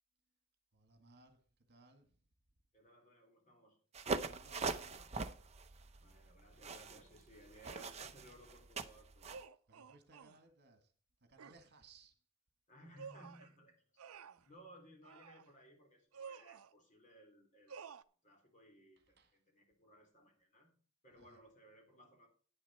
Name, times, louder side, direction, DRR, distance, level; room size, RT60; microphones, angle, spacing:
voice 1, 0.7-1.4 1.7-2.0 4.1-5.1 9.7-10.8 11.3-12.1 19.2-19.3, right 3 dB, 50° right, 7 dB, 1.9 m, -63 dB
voice 2, 2.7-3.8 6.0-9.3 12.7-17.8 18.2-20.7 21.0-22.3, equal, 35° left, 2 dB, 3.8 m, -61 dB
sound 1, 3.9-9.4, right 3 dB, 30° right, 0.7 m, -42 dB
sound 2, 7.7-8.0 9.3-10.4 11.4-11.6 13.0-13.5 14.0-14.5 15.0-15.5 16.1-16.7 17.7-18.0, right 6 dB, 75° right, 0.6 m, -52 dB
10.5 x 9.8 x 4.3 m, 0.41 s
head